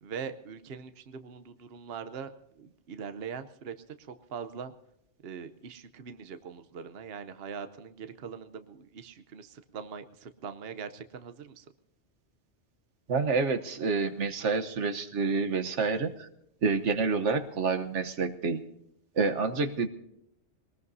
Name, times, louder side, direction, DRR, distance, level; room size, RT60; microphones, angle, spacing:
voice 1, 0.0-4.7 5.2-11.7, right 6 dB, 60° right, 10 dB, 1.0 m, -42 dB
voice 2, 13.1-16.3 16.6-18.6 19.2-19.9, right 4 dB, 85° right, 8 dB, 1.4 m, -28 dB
22.0 x 19.5 x 2.7 m, 0.79 s
omnidirectional pair, 1.2 m